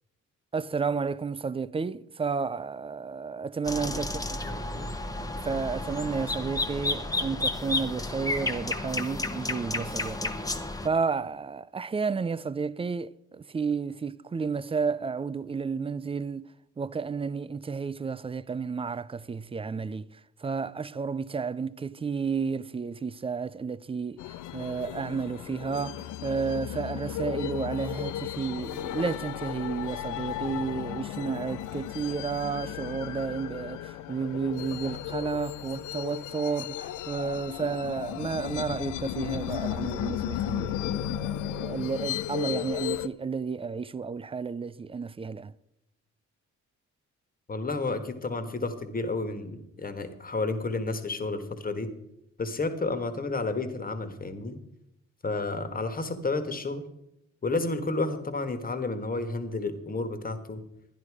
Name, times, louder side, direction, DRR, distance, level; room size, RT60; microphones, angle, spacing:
voice 1, 0.5-4.4 5.4-16.5 16.8-20.1 20.4-24.3 24.5-45.5, right 5 dB, 20° right, 0.4 m, -32 dB
sound 1, 3.7-10.9, left 2 dB, 10° left, 1.0 m, -32 dB
voice 2, 4.4-4.9 47.5-51.9 52.4-54.6 55.2-56.8 57.4-60.6, left 3 dB, 30° left, 1.6 m, -31 dB
sound 2, 24.2-43.1, left 12 dB, 80° left, 0.6 m, -35 dB
11.5 x 10.5 x 4.8 m
cardioid pair, 90°, 30 cm